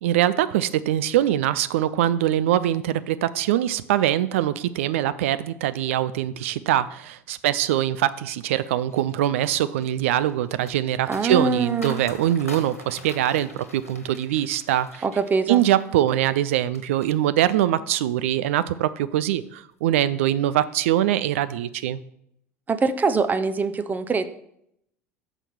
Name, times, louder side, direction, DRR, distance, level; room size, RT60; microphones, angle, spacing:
voice 1, 0.0-15.0 15.5-22.0, right 12 dB, 65° right, 15 dB, 0.4 m, -23 dB
sound 1, 8.9-17.2 17.5-18.1 18.5-18.8, left 1 dB, 90° left, 1.2 m, -44 dB
voice 2, 11.1-12.0 15.0-15.6 22.7-24.3, right 4 dB, 20° right, 10 dB, 0.7 m, -23 dB
6.1 x 5.7 x 6.9 m, 0.74 s
figure-of-eight pair, 70°, 8 cm